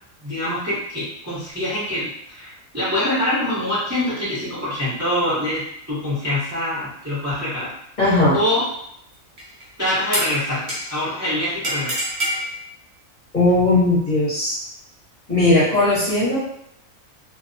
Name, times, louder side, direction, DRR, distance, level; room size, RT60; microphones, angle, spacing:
voice 1, 0.2-7.7 8.3-8.6 9.8-12.0, left 1 dB, 15° right, -11 dB, 0.7 m, -24 dB
voice 2, 8.0-8.4 13.3-14.5 15.3-16.4, left 2 dB, 35° left, -10 dB, 1.0 m, -17 dB
sound 1, 9.4-9.6 10.1-11.1 11.6-12.5, equal, 45° right, 0.4 m, -26 dB
2.5 x 2.1 x 2.6 m, 0.73 s
omnidirectional pair, 1.5 m